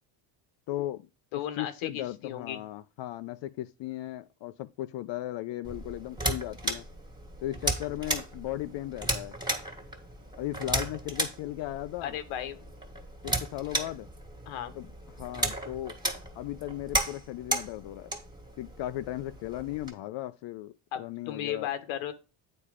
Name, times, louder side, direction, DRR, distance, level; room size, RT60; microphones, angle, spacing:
voice 1, 0.7-6.8 7.4-9.4 10.4-12.2 13.2-14.1 14.7-15.9 16.3-18.1 18.6-20.7 21.0-21.7, left 14 dB, 65° left, 0.6 m, -36 dB
voice 2, 1.3-2.6 12.0-12.7 14.5-14.7 20.9-22.1, left 10 dB, 90° left, 1.2 m, -35 dB
sound 1, 5.6-19.9, right 1 dB, 10° right, 1.6 m, -35 dB
8.6 x 4.3 x 5.0 m
cardioid pair, 125°, 47 cm